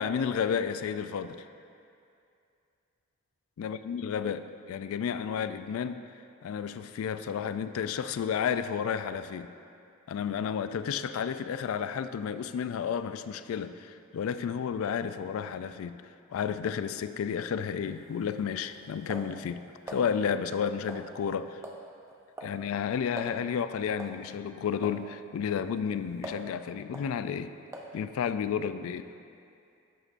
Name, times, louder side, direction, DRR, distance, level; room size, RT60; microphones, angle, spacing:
voice 1, 0.0-1.5 3.6-6.0 6.4-9.5 10.1-16.0 16.3-21.6 22.4-27.5 27.9-29.1, left 7 dB, 75° left, 12 dB, 0.3 m, -32 dB
sound 1, 17.8-20.1 20.9-21.3 21.6-21.9 22.1-22.6 22.9-23.0 23.2-23.4 24.0-24.2 24.8-25.0 25.5-26.5 26.9-27.1 27.7-28.0, right 1 dB, 15° right, 0.5 m, -43 dB
11.0 x 6.6 x 2.5 m, 2.5 s
head